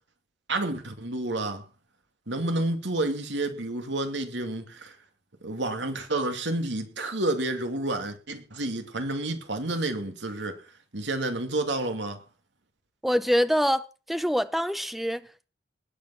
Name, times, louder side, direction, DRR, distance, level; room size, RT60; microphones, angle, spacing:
voice 1, 0.5-1.6 2.3-5.0 5.4-10.6 10.9-12.2, right 2 dB, 80° right, 2.6 m, -30 dB
voice 2, 13.0-15.5, equal, ahead, 0.7 m, -25 dB
20.0 x 8.8 x 6.0 m
head